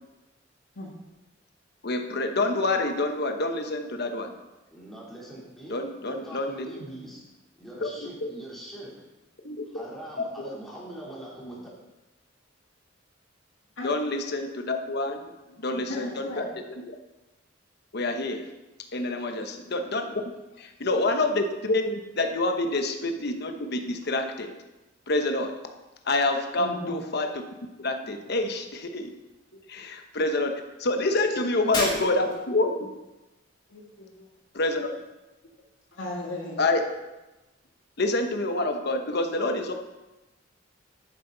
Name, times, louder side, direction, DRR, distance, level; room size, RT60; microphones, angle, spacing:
voice 1, 1.8-4.3 5.7-6.7 7.8-7.9 8.2-8.3 9.4-9.8 13.8-15.3 15.6-16.4 16.7-16.8 17.9-18.5 18.9-20.1 20.6-24.5 25.1-25.5 26.0-27.4 27.8-29.1 29.7-32.9 34.5-34.9 36.6-36.8 38.0-39.7, left 2 dB, 60° left, 5 dB, 1.0 m, -27 dB
voice 2, 4.7-7.2 7.6-8.9 9.7-11.6, right 1 dB, ahead, -6 dB, 3.3 m, -42 dB
voice 3, 15.5-16.5 19.2-19.4 26.6-26.9 33.7-34.3 35.4-35.6 35.9-36.6, left 1 dB, 85° left, -3 dB, 1.9 m, -37 dB
Shatter, 31.7-32.5, left 2 dB, 25° left, 2.4 m, -30 dB
11.5 x 9.5 x 4.0 m, 1.1 s
head